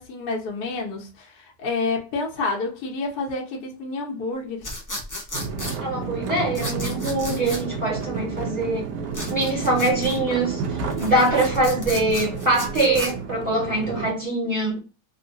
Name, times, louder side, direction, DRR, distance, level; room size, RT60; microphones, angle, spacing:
voice 1, 0.0-4.7, left 3 dB, 70° left, 1.3 m, -29 dB
sound 1, 4.6-5.8 6.5-7.6 9.1-10.2 10.8-13.1, left 1 dB, 30° left, 0.3 m, -34 dB
sound 2, 5.3-14.1, right 4 dB, 80° right, 1.3 m, -31 dB
voice 2, 5.8-8.9 9.3-14.8, right 1 dB, 30° right, 1.2 m, -23 dB
3.7 x 2.1 x 2.6 m
omnidirectional pair, 1.8 m